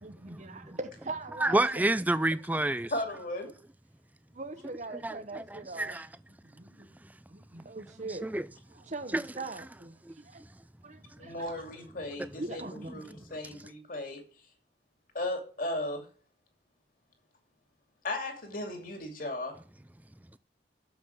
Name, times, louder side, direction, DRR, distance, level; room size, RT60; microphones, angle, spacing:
voice 1, 0.0-1.8 4.3-6.0 6.4-6.9 7.3-8.3 8.7-10.4 10.8-11.6 12.4-13.1, right 3 dB, 40° right, 0.9 m, -41 dB
voice 2, 1.4-2.9 5.0-6.0 8.2-8.4 9.1-9.2, right 1 dB, 10° right, 0.4 m, -28 dB
voice 3, 2.9-3.5 11.2-12.6 12.9-14.2 15.1-16.1 18.0-19.6, left 1 dB, 50° left, 2.6 m, -36 dB
8.0 x 7.2 x 8.5 m
head